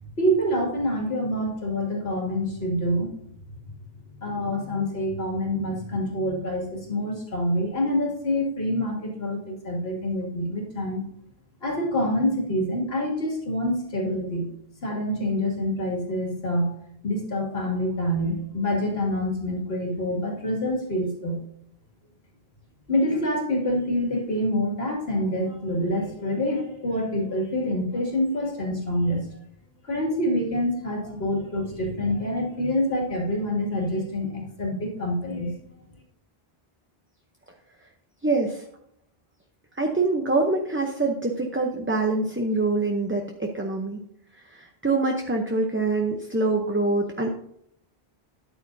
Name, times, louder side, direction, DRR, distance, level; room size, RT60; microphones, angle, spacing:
voice 1, 0.2-3.1 4.2-11.0 11.6-14.5 14.8-16.7 17.0-21.4 22.9-29.4 29.8-35.5, equal, 80° left, 0 dB, 2.6 m, -26 dB
voice 2, 38.2-38.7 39.7-44.0 44.3-47.3, right 3 dB, 15° right, 2 dB, 0.7 m, -25 dB
13.0 x 8.9 x 2.7 m, 0.73 s
omnidirectional pair, 1.0 m